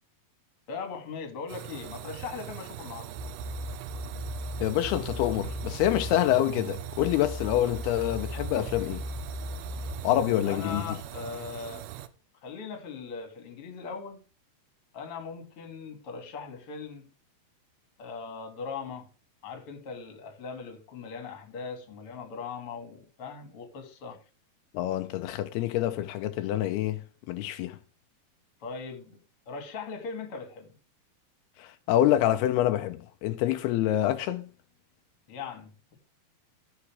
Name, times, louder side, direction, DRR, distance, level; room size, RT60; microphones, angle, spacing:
voice 1, 0.7-3.2 10.4-11.9 12.4-14.2 14.9-17.1 18.0-19.1 19.4-24.2 28.6-29.2 29.5-30.8 35.3-35.7, left 5 dB, 40° left, 2.6 m, -39 dB
sound 1, 1.5-12.1, right 13 dB, 80° right, 2.7 m, -42 dB
sound 2, 3.2-10.8, right 1 dB, 65° right, 2.5 m, -37 dB
voice 2, 4.6-9.0 10.0-10.8 24.7-27.0 27.3-27.8 31.6-34.4, left 13 dB, 85° left, 2.7 m, -26 dB
14.5 x 7.1 x 3.5 m
omnidirectional pair, 4.6 m